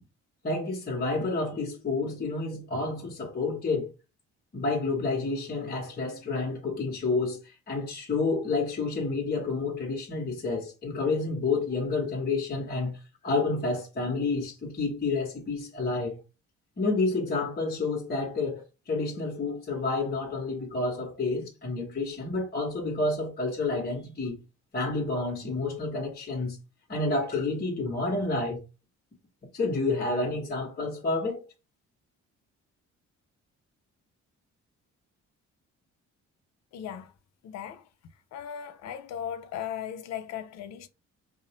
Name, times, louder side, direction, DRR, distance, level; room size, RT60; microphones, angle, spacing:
voice 1, 0.4-3.9 4.5-7.4 7.7-13.0 13.2-16.2 16.8-24.4 24.7-26.6 26.9-28.6 29.5-31.5, left 3 dB, 35° left, 1.0 m, -29 dB
voice 2, 36.7-37.1 37.4-37.8 38.3-40.9, left 9 dB, 60° left, 0.5 m, -37 dB
2.5 x 2.0 x 2.8 m
cardioid pair, 90°, 30 cm